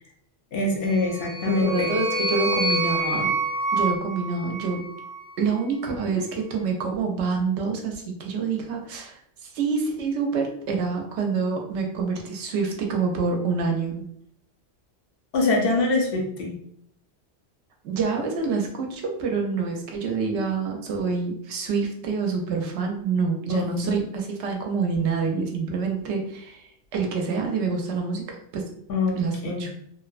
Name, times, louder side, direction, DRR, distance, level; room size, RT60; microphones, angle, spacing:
voice 1, 0.5-1.9 15.3-16.6 23.5-24.0 28.9-29.7, left 3 dB, 60° left, 1 dB, 0.7 m, -24 dB
sound 1, 0.9-5.3, right 1 dB, 30° right, 0.5 m, -27 dB
voice 2, 1.4-3.3 3.7-4.9 5.4-14.1 17.8-26.7 26.9-28.2 28.5-28.6 29.2-29.7, right 4 dB, 70° right, 2 dB, 0.9 m, -27 dB
2.7 x 2.1 x 2.4 m, 0.69 s
omnidirectional pair, 1.3 m